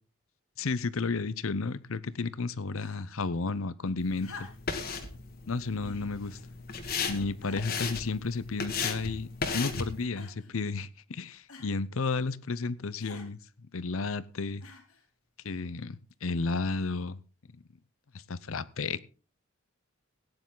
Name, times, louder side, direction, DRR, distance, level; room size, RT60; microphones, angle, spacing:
voice 1, 0.6-4.5 5.5-6.4 7.1-9.3 9.5-13.4 13.7-14.6 15.4-17.2 18.3-19.0, left 4 dB, 70° left, 0.7 m, -32 dB
sound 1, 2.7-3.2 4.2-4.8 5.8-6.1 6.8-6.9 7.4-7.9 8.7-9.2 10.2-10.5 11.5-11.7 13.0-13.3 14.6-15.1 16.1-16.2, left 3 dB, 90° left, 3.4 m, -48 dB
sound 2, 4.0-10.1, left 4 dB, 45° left, 1.7 m, -36 dB
17.0 x 9.8 x 3.9 m
head